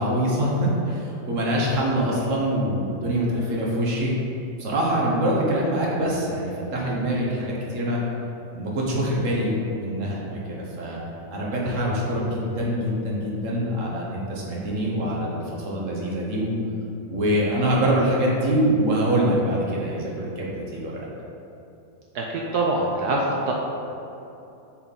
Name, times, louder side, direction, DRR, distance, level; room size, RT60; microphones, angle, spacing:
voice 1, 0.0-4.1 4.6-8.0 8.5-11.0 11.3-16.5 17.1-21.1, right 1 dB, 50° right, -4 dB, 1.3 m, -24 dB
voice 2, 22.1-23.5, right 2 dB, 70° right, -2 dB, 1.0 m, -24 dB
7.2 x 4.6 x 4.0 m, 2.8 s
omnidirectional pair, 2.0 m